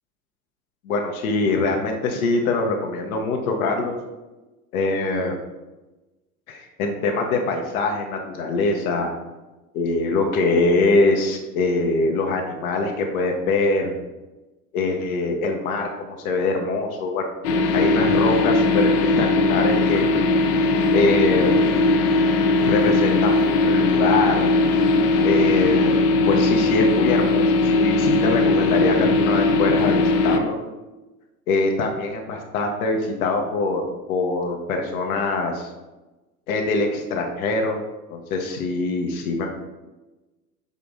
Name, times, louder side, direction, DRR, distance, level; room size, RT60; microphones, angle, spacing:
voice 1, 0.8-4.0 4.7-5.4 6.5-9.1 9.7-13.9 14.7-17.2 17.7-18.9 19.2-20.0 20.9-21.6 22.7-24.5 25.2-30.6 31.5-35.7 36.5-37.8 38.1-39.5, left 3 dB, 65° left, 3 dB, 0.8 m, -23 dB
sound 1, 17.4-30.4, left 2 dB, 45° left, 0.5 m, -19 dB
6.7 x 2.4 x 2.5 m, 1.1 s
hypercardioid pair, 95°, 46 cm